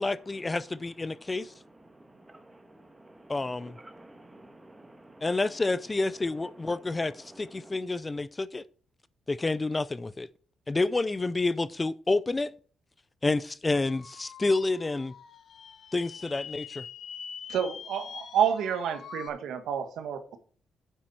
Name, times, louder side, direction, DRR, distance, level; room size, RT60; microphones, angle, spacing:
voice 1, 0.0-1.5 3.3-3.8 5.2-8.6 9.3-10.3 10.7-12.5 13.2-15.1 15.9-16.8, left 3 dB, 25° left, 0.5 m, -29 dB
voice 2, 1.8-5.4 6.5-7.8, right 1 dB, 15° right, 1.6 m, -52 dB
sound 1, 13.7-19.3, left 7 dB, 65° left, 1.2 m, -44 dB
voice 3, 17.5-20.4, right 8 dB, 85° right, 1.5 m, -29 dB
9.2 x 7.5 x 4.2 m
cardioid pair, 85°, 0 cm